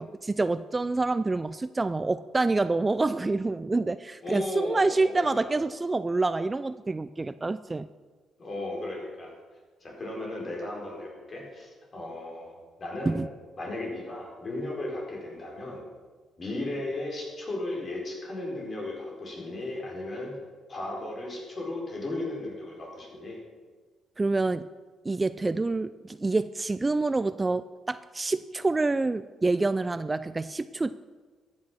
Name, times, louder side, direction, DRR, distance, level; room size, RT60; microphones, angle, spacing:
voice 1, 0.0-7.9 13.1-13.3 24.2-24.7 25.0-30.9, right 3 dB, 20° right, 14 dB, 0.4 m, -27 dB
voice 2, 4.2-5.6 8.4-9.3 9.8-13.2 13.6-15.8 16.4-20.3 20.7-23.4, left 2 dB, 40° left, -1 dB, 4.8 m, -35 dB
13.5 x 8.5 x 6.4 m, 1.4 s
cardioid pair, 90°, 0 cm